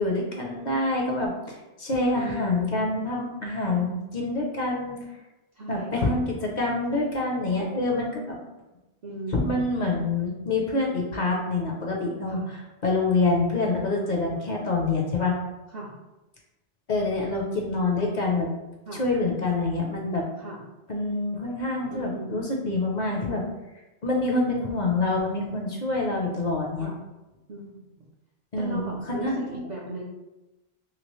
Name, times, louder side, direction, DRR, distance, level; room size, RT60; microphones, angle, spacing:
voice 1, 0.0-5.0 5.7-8.4 9.3-15.4 16.9-18.5 18.9-20.2 20.9-23.4 24.0-26.9 28.5-29.6, left 2 dB, 50° left, -1 dB, 0.6 m, -26 dB
voice 2, 2.1-2.8 3.6-3.8 5.6-6.2 9.0-9.6 12.3-12.5 15.7-15.9 18.9-19.0 20.4-20.6 21.9-22.4 26.8-27.0 27.5-28.1 28.6-30.0, right 2 dB, 55° right, -4 dB, 0.5 m, -37 dB
2.9 x 2.8 x 3.0 m, 1.0 s
omnidirectional pair, 1.1 m